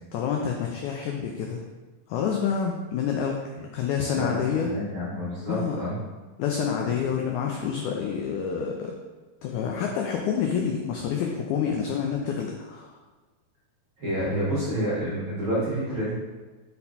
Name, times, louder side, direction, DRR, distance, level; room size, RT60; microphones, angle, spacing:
voice 1, 0.1-1.6 2.1-4.7 5.5-5.8 6.4-8.9 9.4-13.0, left 7 dB, 85° left, 1 dB, 1.7 m, -28 dB
voice 2, 4.1-6.0 6.8-7.1 14.0-16.1, equal, 45° right, -9 dB, 1.9 m, -29 dB
5.5 x 4.3 x 4.1 m, 1.3 s
omnidirectional pair, 4.1 m